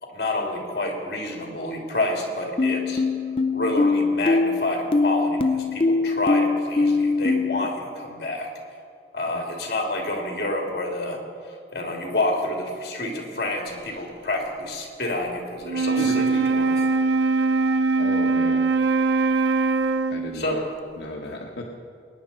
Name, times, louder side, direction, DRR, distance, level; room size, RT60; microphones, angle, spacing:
voice 1, 0.0-3.0 3.5-8.5 9.1-16.1 16.5-16.7 20.3-20.5, left 2 dB, 60° left, 0 dB, 2.8 m, -28 dB
sound 1, 2.6-7.7, left 3 dB, 30° left, 0.5 m, -22 dB
Wind instrument woodwind instrument, 15.6-20.4, right 4 dB, 85° right, 0.5 m, -22 dB
voice 2, 16.0-16.4 18.0-18.7 20.1-20.6 21.0-21.7, left 1 dB, 85° left, -2 dB, 1.2 m, -34 dB
22.5 x 10.0 x 4.3 m, 2.4 s
head